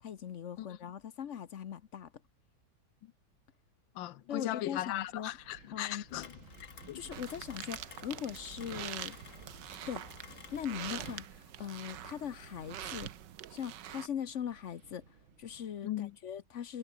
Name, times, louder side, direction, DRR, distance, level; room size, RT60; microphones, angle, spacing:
voice 1, 0.0-2.1 4.3-5.3 5.7-6.0 6.9-9.2 9.9-10.1 10.5-13.1 13.5-16.8, left 9 dB, 55° left, 0.8 m, -40 dB
voice 2, 3.9-6.4 6.9-7.0 15.8-16.2, left 14 dB, 75° left, 1.4 m, -38 dB
Wind, 4.7-16.2, right 7 dB, 85° right, 2.9 m, -56 dB
Rain, 6.1-11.3, left 6 dB, 40° left, 1.9 m, -53 dB
sound 1, 7.1-14.1, right 11 dB, 65° right, 1.6 m, -45 dB
omnidirectional pair, 2.2 m